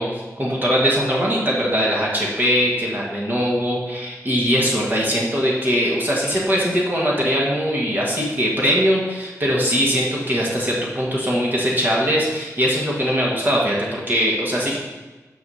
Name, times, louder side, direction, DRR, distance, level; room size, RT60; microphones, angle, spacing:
voice 1, 0.0-14.8, equal, 30° right, -4 dB, 1.7 m, -21 dB
5.7 x 4.7 x 6.3 m, 1.2 s
cardioid pair, 50°, 6 cm